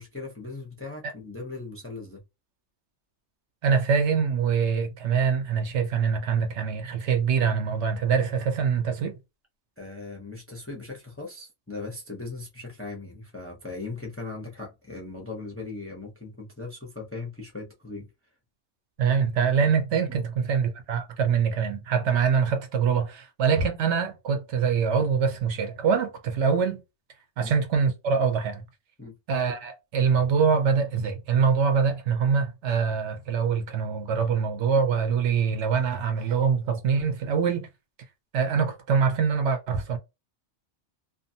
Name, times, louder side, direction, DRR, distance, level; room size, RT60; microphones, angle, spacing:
voice 1, 0.0-2.2 9.8-18.1 20.1-20.2 27.4-27.5 29.0-29.1, left 3 dB, 15° left, 0.6 m, -38 dB
voice 2, 3.6-9.1 19.0-26.8 27.4-28.6 29.3-37.7 38.3-40.0, right 6 dB, 75° right, 0.9 m, -24 dB
2.6 x 2.3 x 2.6 m
omnidirectional pair, 1.2 m